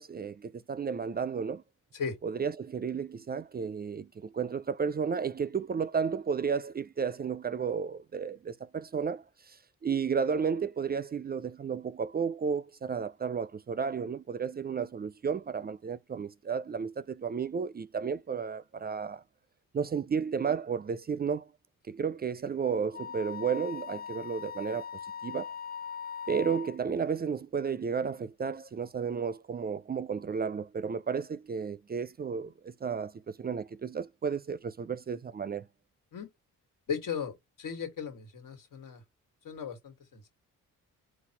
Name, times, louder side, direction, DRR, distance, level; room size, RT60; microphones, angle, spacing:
voice 1, 0.0-1.6 2.2-19.2 19.7-21.5 21.9-24.9 25.2-25.5 26.3-35.7, right 6 dB, 30° right, 0.4 m, -33 dB
Wind instrument woodwind instrument, 22.9-26.8, left 7 dB, 30° left, 0.5 m, -40 dB
voice 2, 36.9-39.0 39.4-40.2, left 6 dB, 75° left, 1.9 m, -37 dB
4.0 x 2.4 x 4.5 m
supercardioid pair, 55°, 33 cm